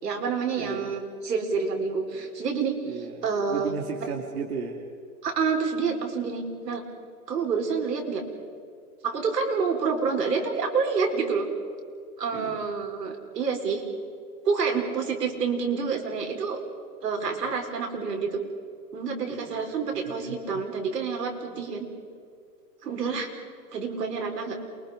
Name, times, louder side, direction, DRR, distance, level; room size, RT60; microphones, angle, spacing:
voice 1, 0.0-2.8 3.2-3.7 5.2-6.8 7.3-8.2 9.0-11.5 12.2-13.8 14.4-16.6 17.0-18.4 18.9-21.9 22.8-23.3 23.7-24.6, right 5 dB, 90° right, 3 dB, 5.0 m, -28 dB
voice 2, 0.6-0.9 2.1-2.3 2.8-4.8 12.3-12.6 17.2-17.4 19.3-19.6 20.2-20.4 21.5-21.6, right 5 dB, 65° right, 1 dB, 2.8 m, -35 dB
28.5 x 24.0 x 5.2 m, 2.2 s
hypercardioid pair, 160°, 47 cm